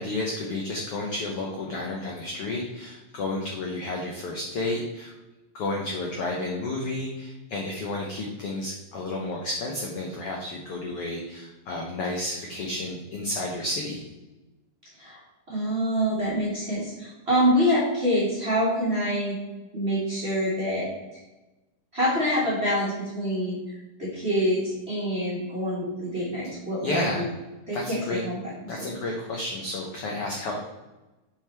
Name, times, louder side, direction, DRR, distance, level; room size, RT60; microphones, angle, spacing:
voice 1, 0.0-5.1 5.5-14.0 26.8-27.3 27.7-28.2 28.7-30.6, left 2 dB, 75° left, -1 dB, 1.3 m, -31 dB
voice 2, 15.5-19.3 19.7-20.9 21.1-21.2 21.9-27.1 27.7-28.5 28.8-28.9, equal, 25° right, -7 dB, 1.5 m, -26 dB
7.3 x 5.6 x 3.3 m, 1.1 s
omnidirectional pair, 3.9 m